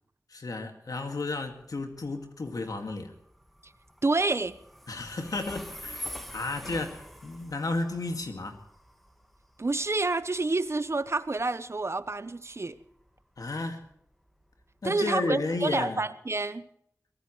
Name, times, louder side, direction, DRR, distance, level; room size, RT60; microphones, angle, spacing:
voice 1, 0.3-3.1 4.9-8.6 13.4-13.8 14.8-16.0, left 3 dB, 90° left, 4 dB, 2.2 m, -33 dB
Train, 1.1-15.8, equal, ahead, 1.9 m, -47 dB
voice 2, 4.0-4.6 9.6-12.8 14.8-16.7, right 3 dB, 50° right, 13 dB, 1.0 m, -28 dB
23.0 x 18.5 x 3.2 m, 0.70 s
wide cardioid pair, 65°, 6 cm